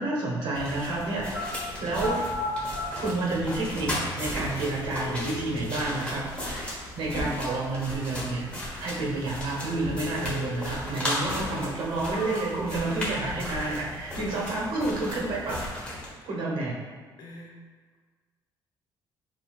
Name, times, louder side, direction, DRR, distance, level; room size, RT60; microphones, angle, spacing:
voice 1, 0.0-1.5 1.8-2.2 2.9-8.5 8.8-15.7 16.3-16.7, right 2 dB, 75° right, -3 dB, 1.1 m, -30 dB
sound 1, 0.5-16.1, left 1 dB, 15° left, 1.2 m, -36 dB
sound 2, 1.2-1.5 1.9-2.9 3.9-4.0 4.7-5.7 9.7-10.7 11.1-11.2 11.8-12.7 13.1-13.8 14.1-14.7, left 3 dB, 80° left, 1.1 m, -37 dB
sound 3, 4.2-6.5 6.7-7.8 9.0-10.5, right 1 dB, 20° right, 0.4 m, -43 dB
voice 2, 17.2-17.7, left 1 dB, 60° left, -1 dB, 0.7 m, -46 dB
6.1 x 2.8 x 2.3 m, 1.5 s
cardioid pair, 130°, 8 cm